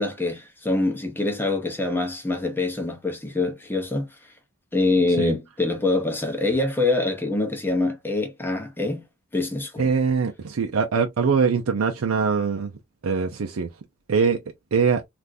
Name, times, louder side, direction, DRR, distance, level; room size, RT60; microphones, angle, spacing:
voice 1, 0.0-4.1 4.7-9.0 9.3-9.9, left 2 dB, 10° left, 0.7 m, -25 dB
voice 2, 9.8-12.7 13.0-13.7 14.1-14.4 14.7-15.0, right 5 dB, 85° right, 0.5 m, -22 dB
3.4 x 2.5 x 2.5 m
head